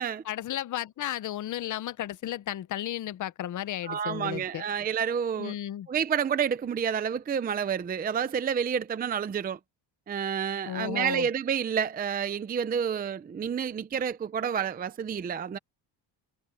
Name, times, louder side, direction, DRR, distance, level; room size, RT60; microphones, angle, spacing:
voice 1, 0.2-4.6 5.4-5.9 10.6-11.3, left 12 dB, 45° left, 0.7 m, -34 dB
voice 2, 3.8-5.5 5.9-9.6 10.1-15.6, right 7 dB, 20° right, 0.5 m, -29 dB
cardioid pair, 170°, 43 cm